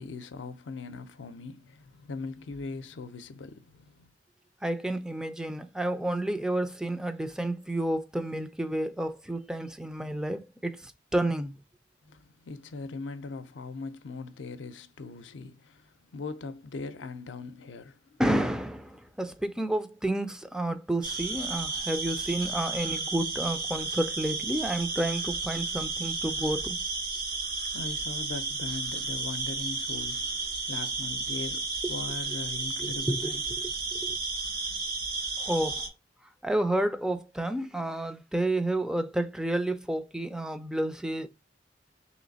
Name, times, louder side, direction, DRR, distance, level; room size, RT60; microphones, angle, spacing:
voice 1, 0.0-4.1 12.0-18.2 27.7-33.4 33.9-34.0, left 3 dB, 80° left, 0.5 m, -40 dB
voice 2, 4.6-11.5 18.2-26.8 31.8-31.9 32.8-33.3 33.6-34.2 35.4-35.9 36.4-41.3, right 1 dB, 5° right, 0.3 m, -30 dB
sound 1, 21.0-35.9, right 3 dB, 55° right, 0.8 m, -33 dB
3.2 x 3.0 x 3.9 m
head